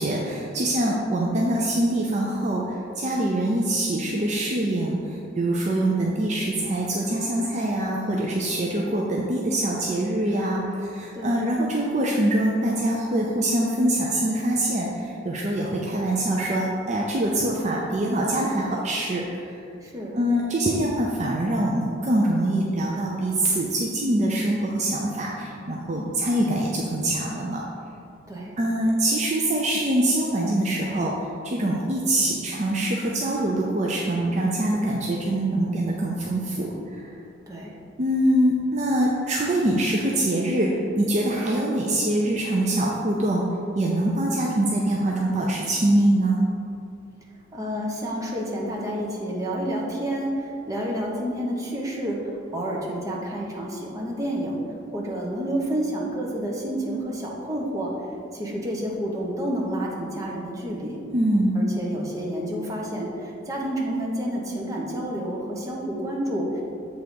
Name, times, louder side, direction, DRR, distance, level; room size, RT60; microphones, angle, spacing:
voice 1, 0.0-19.6 20.1-27.6 28.6-37.0 38.0-43.5 43.7-46.4 61.1-61.7, right 1 dB, 40° right, -2 dB, 0.5 m, -24 dB
voice 2, 19.8-20.2 26.0-26.1 28.3-28.5 37.5-37.7 47.5-57.9 58.3-61.0 61.5-66.6, right 1 dB, 15° right, -3 dB, 0.9 m, -29 dB
7.6 x 3.4 x 5.2 m, 2.5 s
head